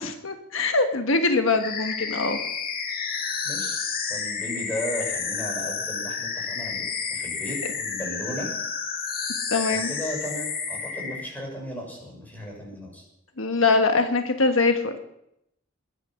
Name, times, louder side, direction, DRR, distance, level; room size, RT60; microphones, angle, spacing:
voice 1, 0.0-2.4 9.5-9.9 13.4-15.0, left 3 dB, 90° left, 6 dB, 1.4 m, -23 dB
sound 1, 1.6-11.3, left 6 dB, 50° left, 1.9 m, -30 dB
voice 2, 3.4-3.8 4.1-8.5 9.7-13.0, equal, 10° left, -1 dB, 5.9 m, -35 dB
21.5 x 9.5 x 6.3 m, 0.80 s
head